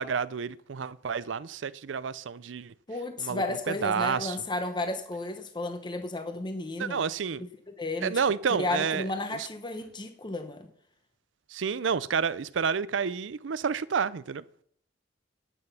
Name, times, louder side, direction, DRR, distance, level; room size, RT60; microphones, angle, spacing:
voice 1, 0.0-2.7 3.2-3.4 3.8-4.4 6.8-7.4 8.0-9.1 9.3-9.5 11.5-14.4, right 6 dB, 85° right, 0.5 m, -29 dB
voice 2, 2.9-7.0 7.8-8.1 8.6-10.7, left 2 dB, 25° left, 0.8 m, -33 dB
11.0 x 8.0 x 5.7 m
head